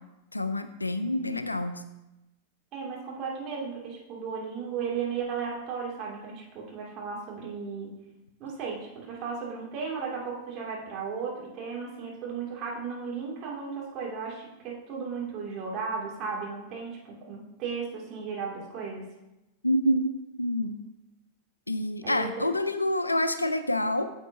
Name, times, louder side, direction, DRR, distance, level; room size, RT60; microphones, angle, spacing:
voice 1, 0.3-1.8 19.6-20.1 20.4-20.8 21.7-24.1, left 1 dB, 85° left, 10 dB, 0.5 m, -27 dB
voice 2, 2.7-7.9 8.4-19.1 22.0-22.5, right 5 dB, 35° right, -3 dB, 2.6 m, -35 dB
9.8 x 7.0 x 2.8 m, 0.95 s
figure-of-eight pair, 90°, 0 cm